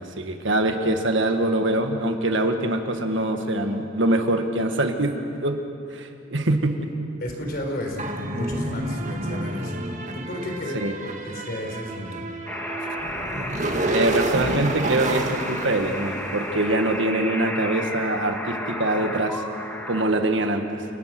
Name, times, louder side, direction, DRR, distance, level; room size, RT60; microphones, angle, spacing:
voice 1, 0.0-5.1 5.4-5.6 5.9-6.9 10.7-10.9 13.9-19.4 19.9-20.8, right 1 dB, 65° right, 5 dB, 1.7 m, -24 dB
voice 2, 7.2-9.8 10.1-10.8 11.2-12.2, left 1 dB, 50° left, 2 dB, 4.1 m, -32 dB
sound 1, 8.0-16.7, right 2 dB, 40° right, 1.8 m, -30 dB
sound 2, 12.5-20.1, left 1 dB, 10° left, 1.8 m, -33 dB
29.5 x 19.0 x 6.1 m, 2.6 s
head